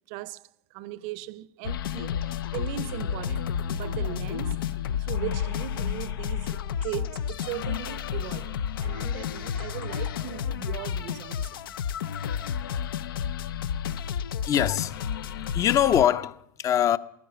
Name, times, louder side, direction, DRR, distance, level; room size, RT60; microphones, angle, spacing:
voice 1, 0.1-4.6 5.0-11.7, right 16 dB, 55° right, 0.6 m, -38 dB
sound 1, 1.6-16.0, left 8 dB, 90° left, 0.6 m, -31 dB
voice 2, 14.5-17.0, left 10 dB, 30° left, 0.5 m, -24 dB
15.5 x 11.0 x 7.5 m
supercardioid pair, 130°, 11 cm